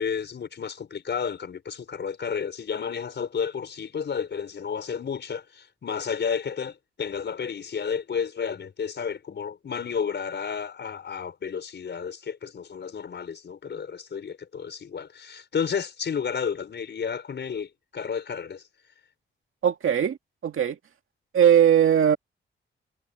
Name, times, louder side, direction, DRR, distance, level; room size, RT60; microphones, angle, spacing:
voice 1, 0.0-18.6, left 6 dB, 60° left, 5.0 m, -31 dB
voice 2, 19.6-20.2 20.4-20.8 21.3-22.2, right 9 dB, 85° right, 2.0 m, -19 dB
wide cardioid pair, 155°, 21 cm